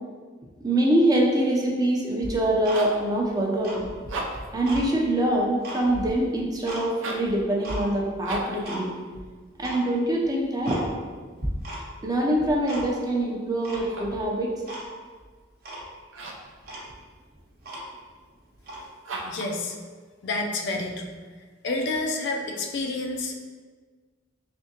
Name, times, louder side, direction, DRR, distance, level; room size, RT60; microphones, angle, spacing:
voice 1, 0.6-3.9 4.5-8.9 9.6-10.9 12.0-14.5, right 1 dB, 20° right, -2 dB, 0.6 m, -24 dB
Tick-tock, 2.2-3.2 3.5-4.9 5.3-6.8 7.2-7.8 8.3-8.8 9.1-9.2 9.6-9.8 10.2-10.3 10.6-11.1 11.4-12.1 12.3-13.1 13.6-14.2 14.7-14.9 15.2-15.3 15.6-15.9 16.3-16.4 16.6-18.1 18.6-18.8, right 1 dB, 50° right, 0.8 m, -36 dB
sound 1, 2.7-3.1 4.0-4.6 6.9-7.4 8.2-8.7 13.7-14.3 16.1-16.5 19.0-19.6, right 2 dB, 85° right, 0.6 m, -35 dB
voice 2, 19.2-19.7 20.2-21.2 21.6-23.3, left 2 dB, 65° left, 2 dB, 0.4 m, -29 dB
3.6 x 3.4 x 2.8 m, 1.5 s
head